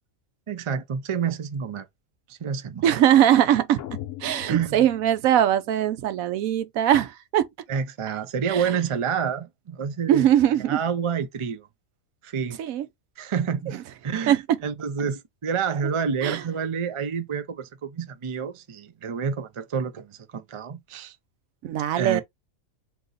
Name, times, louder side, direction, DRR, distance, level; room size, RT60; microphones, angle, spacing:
voice 1, 0.5-1.9 2.3-2.8 4.5-4.8 7.7-10.3 10.7-11.7 12.2-12.6 13.2-13.8 14.0-21.2 21.7-22.2, right 6 dB, 50° right, 0.3 m, -28 dB
voice 2, 2.8-3.8 4.2-7.5 8.5-8.7 10.1-10.8 12.6-12.8 14.3-14.6 16.2-16.4 21.6-22.2, right 11 dB, 85° right, 1.1 m, -21 dB
sound 1, 3.8-5.9, left 12 dB, 70° left, 1.0 m, -40 dB
3.9 x 3.0 x 3.9 m
omnidirectional pair, 1.4 m